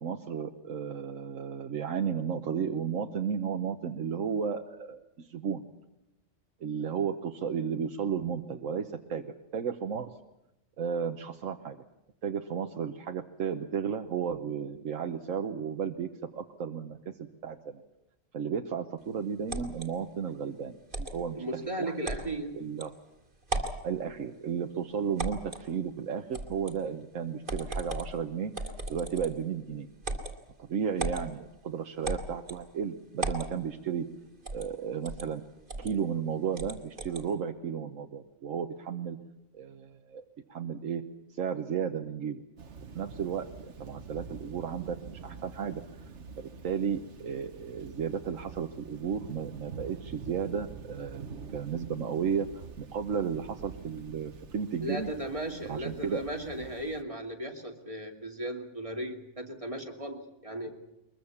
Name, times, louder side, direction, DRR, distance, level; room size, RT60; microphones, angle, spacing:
voice 1, 0.0-5.6 6.6-10.1 10.8-11.8 12.2-17.8 18.3-21.9 22.5-22.9 23.8-29.9 30.6-34.1 34.5-35.4 35.8-39.2 39.5-40.2 40.5-41.0 41.3-42.4 42.9-45.8 46.4-51.2 51.5-55.1 55.7-56.2, right 7 dB, 90° right, 4 dB, 1.4 m, -33 dB
sound 1, 19.5-19.9 20.9-21.2 22.0-22.3 22.8-22.9 23.4-23.8 25.2-25.7 26.3-26.8 27.5-28.1 28.5-29.4 30.0-30.3 31.0-31.3 32.0-32.6 33.2-33.5 34.5-34.7 35.0-35.3 35.7-35.9 36.6-37.2, right 2 dB, 40° right, 2.6 m, -35 dB
voice 2, 21.3-22.6 54.8-60.7, right 1 dB, 25° right, 2 dB, 2.6 m, -36 dB
Thunder / Rain, 42.6-57.0, right 5 dB, 65° right, 1.4 m, -46 dB
22.5 x 21.5 x 7.2 m, 0.92 s
omnidirectional pair, 1.3 m